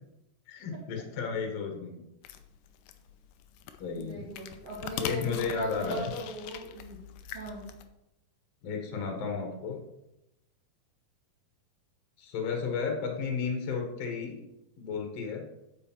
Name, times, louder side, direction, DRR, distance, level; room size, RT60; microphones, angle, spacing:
voice 1, 0.5-2.0 3.8-4.2 5.0-6.1 8.6-9.8 12.2-14.4 14.8-15.4, left 5 dB, 50° left, 2 dB, 2.2 m, -33 dB
sound 1, 2.2-7.8, left 9 dB, 80° left, 2.0 m, -42 dB
voice 2, 3.9-7.0 7.3-7.7, right 1 dB, 50° right, -5 dB, 2.4 m, -38 dB
10.0 x 7.0 x 4.5 m, 0.88 s
omnidirectional pair, 4.5 m